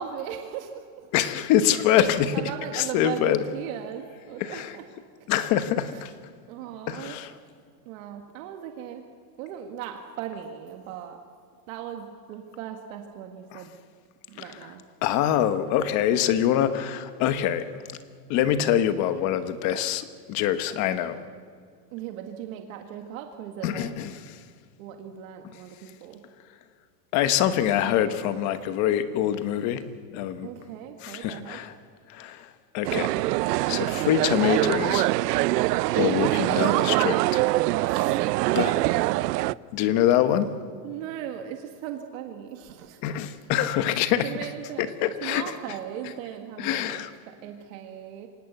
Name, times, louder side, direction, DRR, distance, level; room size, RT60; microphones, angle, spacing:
voice 1, 0.0-1.1 2.3-4.9 5.9-6.1 6.5-7.2 7.9-9.0 9.4-11.2 11.7-13.7 14.3-14.8 15.8-16.1 21.9-23.9 24.8-26.2 30.4-31.6 37.8-38.5 38.8-38.9 40.8-43.0 44.2-44.8 45.2-48.3, right 10 dB, 55° right, 4 dB, 1.9 m, -38 dB
voice 2, 1.1-3.4 4.4-4.7 5.3-6.1 6.9-7.3 13.5-13.6 15.0-17.7 18.3-21.2 23.6-24.4 27.1-29.8 30.1-30.5 31.0-31.7 32.1-32.5 32.7-33.1 33.7-35.1 36.0-37.4 38.5-38.7 39.7-40.5 43.0-44.3 44.8-45.4 46.6-47.1, left 11 dB, 35° left, 11 dB, 1.2 m, -25 dB
sound 1, 32.8-39.5, right 18 dB, 80° right, 0.6 m, -24 dB
25.5 x 18.5 x 8.1 m, 2.2 s
supercardioid pair, 165°, 48 cm